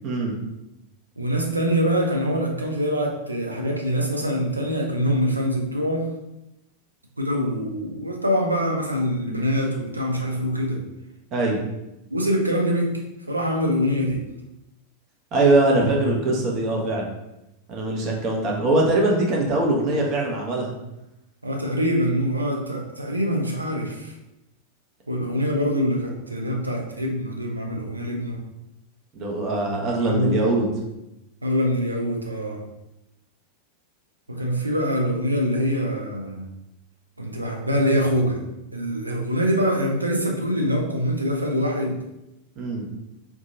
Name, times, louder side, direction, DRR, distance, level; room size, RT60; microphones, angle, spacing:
voice 1, 0.0-0.4 11.3-11.6 15.3-17.1 17.7-20.7 29.1-30.6 42.6-42.9, right 2 dB, 35° right, -1 dB, 0.8 m, -22 dB
voice 2, 1.2-6.1 7.2-10.8 12.1-13.0 13.3-14.2 21.4-24.1 25.1-28.4 29.9-30.5 31.4-32.6 34.3-36.5 37.2-38.4 38.7-42.0, equal, 85° right, 0 dB, 0.5 m, -24 dB
2.8 x 2.2 x 3.8 m, 0.92 s
figure-of-eight pair, 90°, 0 cm